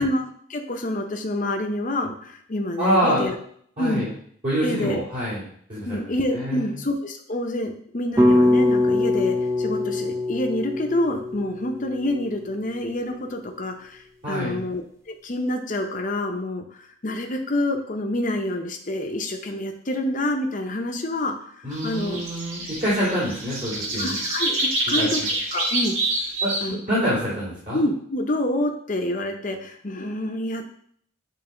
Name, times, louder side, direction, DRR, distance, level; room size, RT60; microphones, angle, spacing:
voice 1, 0.0-3.3 3.8-4.1 4.6-5.0 5.8-22.2 24.0-25.2 25.5-26.0 26.6-26.8 27.7-30.7, left 1 dB, 40° left, 4 dB, 0.8 m, -27 dB
voice 2, 2.8-3.3 3.8-4.1 4.4-5.4 5.7-6.0 6.3-6.8 14.2-14.6 21.6-24.2 25.0-25.1 26.4-27.8, equal, 40° right, -10 dB, 2.6 m, -26 dB
sound 1, 8.2-12.4, left 2 dB, 15° right, 0.5 m, -22 dB
sound 2, 21.7-26.7, right 2 dB, 80° right, 1.7 m, -27 dB
8.9 x 3.3 x 3.8 m, 0.63 s
head